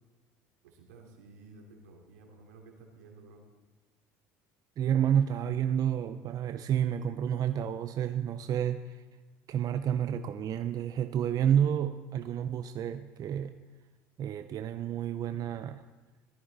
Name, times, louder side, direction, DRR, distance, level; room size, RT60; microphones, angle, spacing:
voice 1, 0.6-3.4, right 3 dB, 85° right, 1 dB, 3.0 m, -53 dB
voice 2, 4.8-9.0 9.5-13.5 14.2-15.8, right 9 dB, 45° right, 10 dB, 0.6 m, -30 dB
17.5 x 14.0 x 4.1 m, 1.3 s
hypercardioid pair, 80°, 8 cm